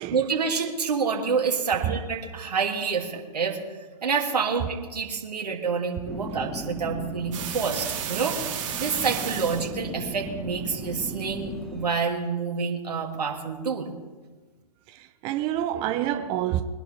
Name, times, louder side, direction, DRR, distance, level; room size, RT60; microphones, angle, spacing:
voice 1, 0.0-3.6 4.0-8.4 8.8-13.9, right 5 dB, 70° right, 2.8 m, -28 dB
sound 1, 6.0-11.9, equal, ahead, 1.6 m, -37 dB
sound 2, 7.3-9.7, right 9 dB, 50° right, 2.9 m, -33 dB
voice 2, 14.9-16.6, right 12 dB, 25° right, 0.7 m, -28 dB
23.0 x 11.5 x 3.5 m
hypercardioid pair, 135°, 21 cm